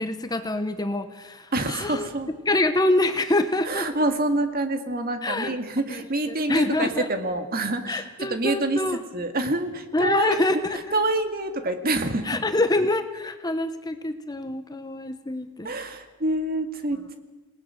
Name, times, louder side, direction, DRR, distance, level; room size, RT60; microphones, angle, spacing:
voice 1, 0.0-2.1 2.4-3.9 5.2-5.5 5.9-7.1 7.9-9.0 9.9-11.0 12.2-15.7, left 2 dB, 20° left, 9 dB, 0.9 m, -26 dB
voice 2, 1.5-2.3 3.7-8.8 9.1-10.4 10.9-12.4 15.6-17.2, right 2 dB, 45° right, 6 dB, 2.0 m, -27 dB
27.5 x 18.5 x 6.5 m, 1.2 s
head